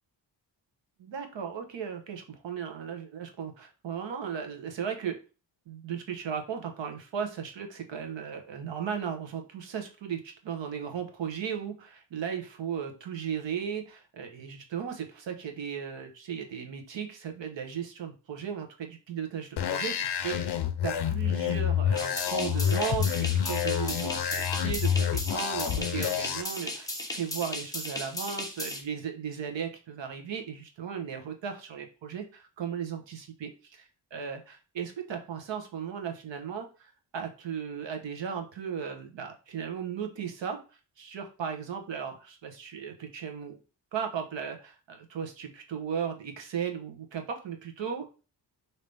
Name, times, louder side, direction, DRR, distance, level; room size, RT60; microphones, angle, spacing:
voice 1, 1.0-5.2 5.7-40.6 41.0-43.6 43.9-48.1, right 7 dB, 80° right, 4 dB, 1.0 m, -36 dB
sound 1, 19.6-26.4, left 9 dB, 65° left, 0.6 m, -28 dB
sound 2, 22.0-28.8, left 1 dB, 10° left, 0.8 m, -36 dB
5.3 x 2.8 x 3.3 m, 0.34 s
wide cardioid pair, 180°, 44 cm